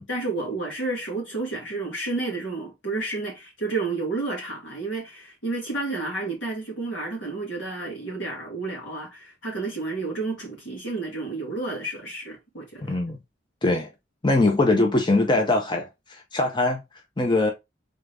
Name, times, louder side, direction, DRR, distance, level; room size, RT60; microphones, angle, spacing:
voice 1, 0.0-13.0, right 3 dB, 80° left, 2.1 m, -31 dB
voice 2, 12.8-13.2 13.6-13.9 14.2-16.8 17.2-17.5, left 2 dB, 25° left, 0.6 m, -22 dB
3.8 x 3.6 x 3.3 m
head